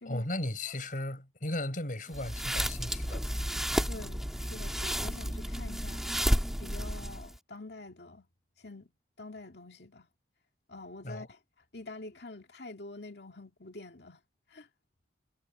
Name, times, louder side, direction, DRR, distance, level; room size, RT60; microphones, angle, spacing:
voice 1, 0.0-3.3 11.0-11.3, left 1 dB, 50° left, 4.8 m, -36 dB
sound 1, 2.1-7.4, equal, 5° right, 2.4 m, -32 dB
voice 2, 3.9-6.1 6.6-8.3 8.6-8.9 9.2-10.1 10.7-11.4 11.7-14.2 14.5-14.7, left 2 dB, 65° left, 2.5 m, -46 dB
head